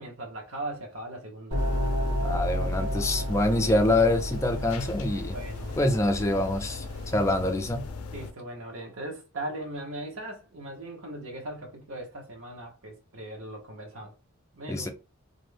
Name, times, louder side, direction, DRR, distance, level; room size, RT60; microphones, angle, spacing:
voice 1, 0.0-1.6 5.3-5.9 8.1-14.1 14.5-14.9, right 1 dB, 70° right, 0.8 m, -39 dB
sound 1, 1.5-7.5, equal, 85° right, 1.2 m, -32 dB
sound 2, 1.6-8.3, left 4 dB, 85° left, 0.4 m, -40 dB
voice 2, 2.2-5.3 5.8-6.8 7.1-7.9 14.7-14.9, left 1 dB, 15° left, 0.3 m, -25 dB
2.5 x 2.1 x 3.1 m
head